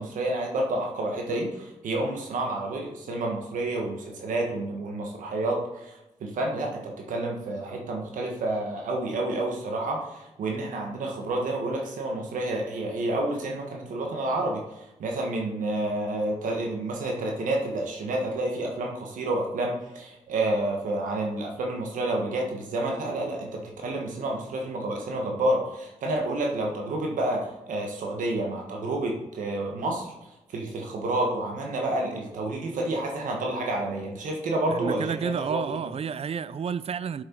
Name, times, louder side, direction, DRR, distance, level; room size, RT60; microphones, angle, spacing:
voice 1, 0.0-30.1 30.5-35.7, right 2 dB, 85° right, 1.3 m, -29 dB
voice 2, 34.7-37.2, right 7 dB, 50° right, 0.4 m, -30 dB
7.6 x 6.4 x 4.5 m
cardioid pair, 55°, 13 cm